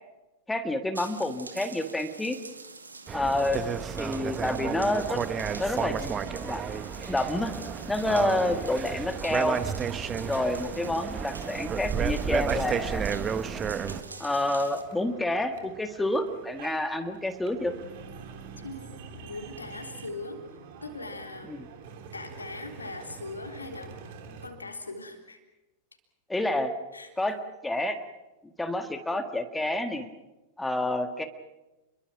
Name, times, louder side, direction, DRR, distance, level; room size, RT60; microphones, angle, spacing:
voice 1, 0.5-2.4 3.1-3.6 4.0-5.2 5.6-6.6 7.1-7.5 7.9-9.6 10.2-13.1 14.2-17.7 21.5-21.6 26.3-26.7 27.2-27.4 27.6-28.0 28.6-30.1 30.6-31.3, left 1 dB, 5° left, 7 dB, 1.8 m, -28 dB
sound 1, 0.9-14.8, right 3 dB, 80° right, 2.2 m, -45 dB
sound 2, 3.1-14.0, right 7 dB, 25° right, 1.3 m, -32 dB
sound 3, 10.1-24.5, right 5 dB, 50° right, 3.3 m, -47 dB
voice 2, 18.6-18.9 19.2-20.4 20.8-21.5 22.1-24.0 24.4-25.4 26.9-27.1, left 2 dB, 80° left, 4 dB, 3.6 m, -40 dB
29.5 x 22.5 x 6.1 m, 1.1 s
figure-of-eight pair, 90°, 0 cm